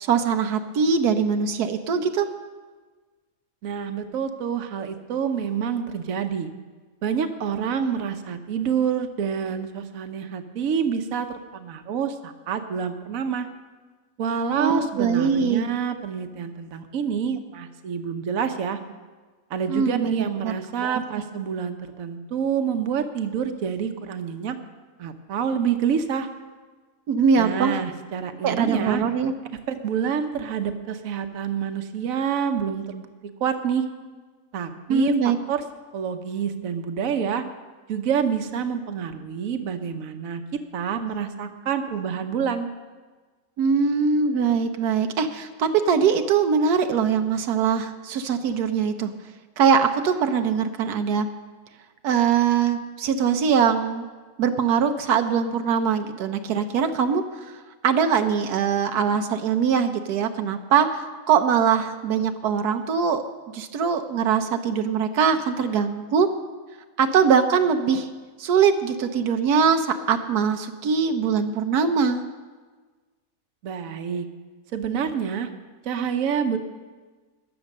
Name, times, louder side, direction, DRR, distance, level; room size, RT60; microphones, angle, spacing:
voice 1, 0.0-2.3 14.6-15.6 19.7-20.5 20.8-21.0 27.1-27.8 28.4-29.3 34.9-35.4 43.6-49.1 49.6-51.3 52.0-54.1 54.4-63.2 63.5-66.3 67.0-68.1 68.4-72.2, right 6 dB, 85° right, 7 dB, 1.3 m, -22 dB
voice 2, 3.6-6.5 7.0-11.3 11.5-13.5 14.2-18.8 19.5-24.6 25.0-26.3 27.4-29.0 29.7-33.1 33.4-33.8 34.5-35.6 35.9-37.4 37.9-42.7 73.6-74.3 74.7-75.5 75.8-76.6, right 7 dB, 65° right, 7 dB, 1.2 m, -27 dB
14.0 x 9.9 x 6.5 m, 1.4 s
omnidirectional pair, 1.6 m